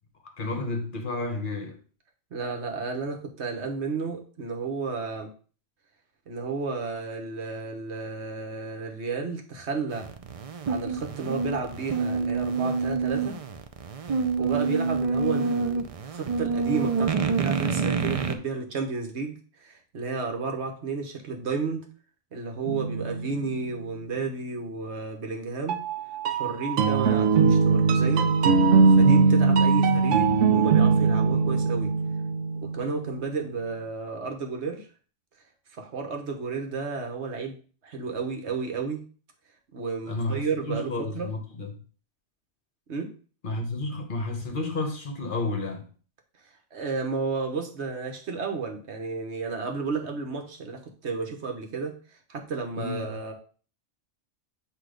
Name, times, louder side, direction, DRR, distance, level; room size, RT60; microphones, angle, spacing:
voice 1, 0.4-1.8 40.1-41.8 43.4-45.9 52.7-53.1, left 2 dB, 45° left, 1.1 m, -31 dB
voice 2, 2.3-5.3 6.3-10.1 10.7-13.4 14.4-21.9 22.3-25.8 26.3-28.3 29.0-31.9 32.6-34.9 35.8-37.6 37.8-39.0 39.7-41.3 42.9-43.1 46.7-53.3, right 4 dB, 65° right, 1.4 m, -32 dB
sound 1, 9.9-18.3, right 5 dB, 45° right, 0.4 m, -27 dB
sound 2, 22.7-23.8 25.7-33.4, right 4 dB, 80° right, 1.1 m, -21 dB
8.2 x 3.0 x 5.0 m
omnidirectional pair, 1.2 m